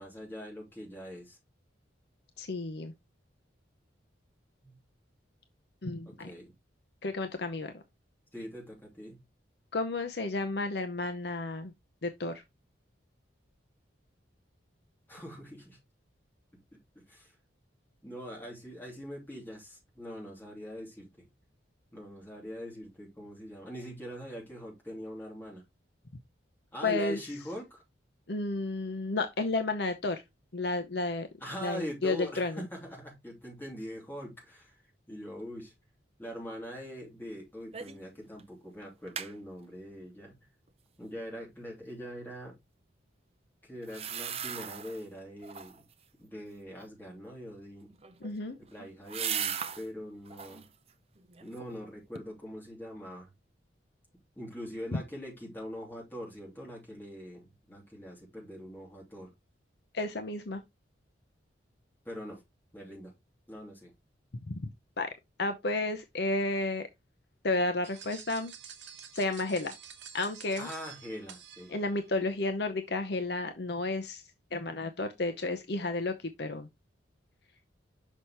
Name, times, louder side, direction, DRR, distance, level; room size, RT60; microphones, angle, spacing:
voice 1, 0.0-1.4 4.6-4.8 6.0-6.5 8.3-9.2 15.1-15.8 16.9-17.3 18.0-21.3 21.9-25.6 26.7-27.8 31.4-34.8 35.1-35.7 36.2-40.5 41.0-42.5 43.6-45.8 46.2-47.9 48.7-50.6 51.4-53.3 54.4-59.3 62.0-62.4 62.7-63.1 63.5-63.9 70.6-71.8, equal, 10° left, 2.8 m, -43 dB
voice 2, 2.4-2.9 5.8-6.3 7.0-7.8 9.7-11.7 12.0-12.4 26.8-27.2 28.3-30.2 30.5-31.3 31.6-32.7 48.2-48.6 59.9-60.6 64.5-64.6 65.0-65.1 65.4-66.9 67.4-68.5 69.1-69.7 70.1-70.7 71.7-74.2 74.5-76.7, left 2 dB, 55° left, 0.7 m, -32 dB
sound 1, 37.7-38.1 38.4-38.5 38.8-39.3 43.8-45.0 45.4-45.9 47.9-49.9 50.3-50.7 51.2-51.8 52.2-52.3, right 8 dB, 30° right, 0.6 m, -38 dB
sound 2, 67.8-72.1, right 8 dB, 70° right, 1.1 m, -49 dB
6.3 x 5.5 x 3.0 m
head